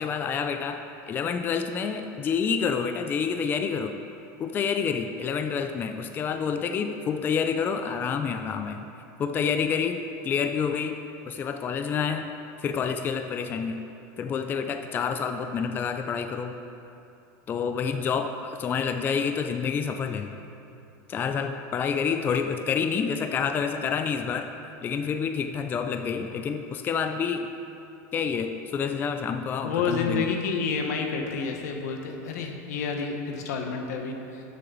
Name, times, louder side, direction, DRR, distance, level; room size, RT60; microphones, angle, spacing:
voice 1, 0.0-3.9 4.4-8.9 9.2-11.0 11.3-12.3 12.6-13.8 14.2-16.5 17.5-20.3 21.1-24.5 24.8-27.5 28.1-30.3, left 6 dB, 25° left, 7 dB, 0.4 m, -28 dB
voice 2, 29.6-34.4, left 5 dB, 80° left, 3 dB, 1.3 m, -29 dB
13.0 x 7.6 x 4.0 m, 2.8 s
supercardioid pair, 140°, 9 cm